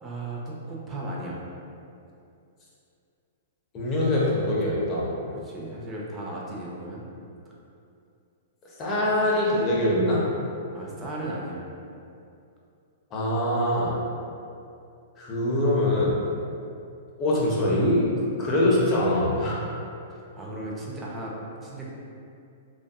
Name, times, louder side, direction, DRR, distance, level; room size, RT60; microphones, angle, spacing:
voice 1, 0.0-1.4 5.3-7.0 10.7-11.6 20.1-21.3 21.6-21.9, right 1 dB, 20° right, -4 dB, 0.5 m, -36 dB
voice 2, 3.7-5.1 8.8-10.2 13.1-13.9 15.2-16.2 17.2-18.1 18.4-19.6, left 1 dB, 30° left, -6 dB, 0.6 m, -23 dB
2.6 x 2.3 x 2.3 m, 2.6 s
hypercardioid pair, 130°, 0 cm